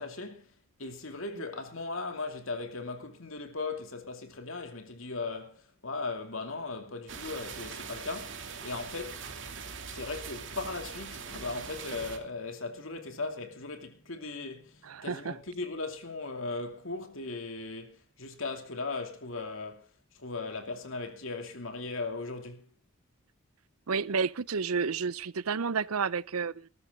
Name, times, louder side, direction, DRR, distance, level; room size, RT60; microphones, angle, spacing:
voice 1, 0.0-9.3 9.9-22.7, left 3 dB, 65° left, 2.6 m, -38 dB
sound 1, 7.1-12.2, right 5 dB, 55° right, 2.6 m, -42 dB
sound 2, 11.3-18.6, right 2 dB, 40° left, 5.4 m, -63 dB
voice 2, 14.8-15.4 23.9-26.7, right 5 dB, 90° right, 0.7 m, -31 dB
20.0 x 13.5 x 3.7 m
head